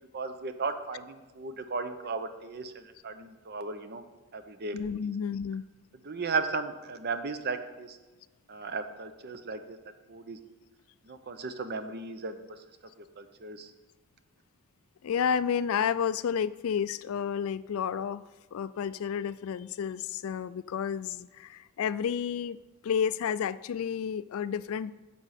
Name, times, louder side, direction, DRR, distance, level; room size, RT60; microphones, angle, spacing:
voice 1, 0.1-4.0 4.3-4.8 5.0-5.1 6.0-8.0 8.5-9.8 10.1-10.4 11.1-12.4 13.2-13.7, right 4 dB, 45° right, 9 dB, 0.7 m, -35 dB
voice 2, 4.7-5.6 15.0-22.6 22.8-24.9, left 7 dB, 70° left, 17 dB, 0.3 m, -31 dB
10.5 x 7.7 x 4.2 m, 1.2 s
head